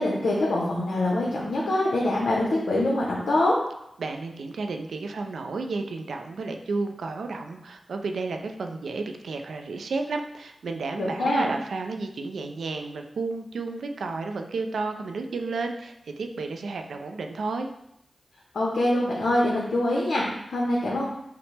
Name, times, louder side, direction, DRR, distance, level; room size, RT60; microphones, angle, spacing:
voice 1, 0.0-3.5 11.0-11.5 18.5-21.1, left 1 dB, 85° left, -4 dB, 0.7 m, -24 dB
voice 2, 4.0-17.7, right 3 dB, 90° right, 5 dB, 0.3 m, -32 dB
5.7 x 2.1 x 3.2 m, 0.79 s
cardioid pair, 45°, 0 cm